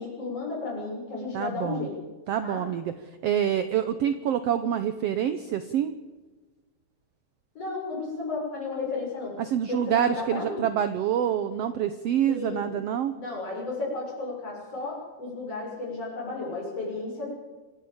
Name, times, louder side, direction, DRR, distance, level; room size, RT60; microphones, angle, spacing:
voice 1, 0.0-2.0 2.4-2.7 7.5-9.4 9.7-10.7 12.3-12.7 13.1-17.3, left 3 dB, 50° left, -3 dB, 8.1 m, -33 dB
voice 2, 1.3-1.9 2.3-2.9 3.2-6.0 9.4-13.2, right 10 dB, 70° right, 11 dB, 1.5 m, -26 dB
26.5 x 11.5 x 8.8 m, 1.3 s
omnidirectional pair, 3.6 m